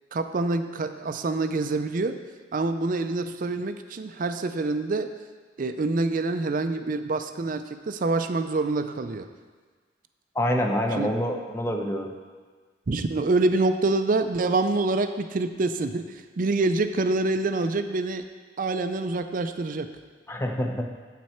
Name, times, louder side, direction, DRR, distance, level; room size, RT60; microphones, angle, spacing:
voice 1, 0.1-2.2 2.5-5.1 5.6-9.3 10.9-11.1 12.9-18.2 18.6-19.9, right 3 dB, 45° right, 9 dB, 0.4 m, -26 dB
voice 2, 10.3-12.1 20.3-20.9, equal, 15° left, 2 dB, 0.7 m, -26 dB
9.4 x 7.5 x 4.4 m, 1.5 s
head